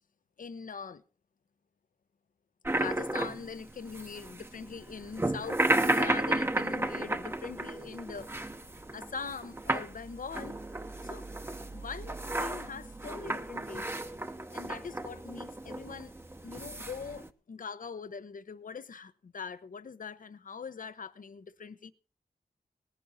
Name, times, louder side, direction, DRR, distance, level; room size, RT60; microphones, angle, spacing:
voice 1, 0.4-1.0 2.7-8.3 8.9-10.6 11.0-11.3 11.7-13.9 14.5-16.1 16.4-21.9, left 5 dB, 60° left, 0.9 m, -42 dB
sound 1, 2.6-17.3, right 1 dB, 15° right, 0.9 m, -33 dB
19.0 x 10.5 x 4.1 m
wide cardioid pair, 110°, 15 cm